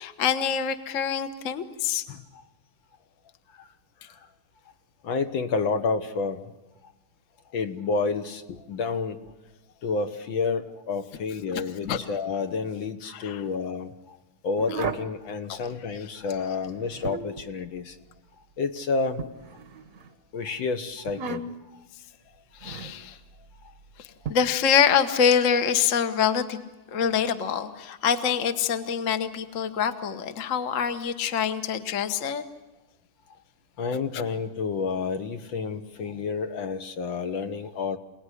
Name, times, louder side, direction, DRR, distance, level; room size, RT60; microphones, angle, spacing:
voice 1, 0.0-2.1 11.9-12.0 13.1-13.4 14.7-14.8 15.5-15.6 22.6-23.2 24.0-26.6 26.9-32.4, left 7 dB, 45° left, 9 dB, 1.3 m, -25 dB
voice 2, 5.0-6.4 7.5-9.2 9.8-14.2 14.4-18.0 18.6-19.2 20.3-21.4 33.8-38.0, left 4 dB, 65° left, 7 dB, 1.8 m, -29 dB
sound 1, 14.6-15.1 16.7-17.5 19.2-20.1 21.1-21.7 22.6-23.0 24.2-24.3, right 5 dB, 45° right, 1.2 m, -34 dB
27.5 x 18.5 x 9.9 m, 1.0 s
omnidirectional pair, 2.4 m